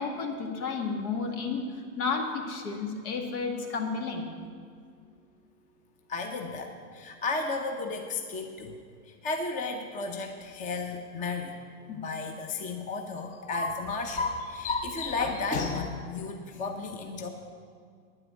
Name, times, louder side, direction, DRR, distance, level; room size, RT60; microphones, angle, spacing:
voice 1, 0.0-1.6 2.0-4.3 11.9-12.0, left 4 dB, 65° left, 3 dB, 2.2 m, -32 dB
voice 2, 6.1-8.8 9.1-11.6 11.9-17.3, left 3 dB, 15° left, 5 dB, 0.7 m, -33 dB
9.8 x 8.8 x 8.1 m, 2.2 s
hypercardioid pair, 130°, 45 cm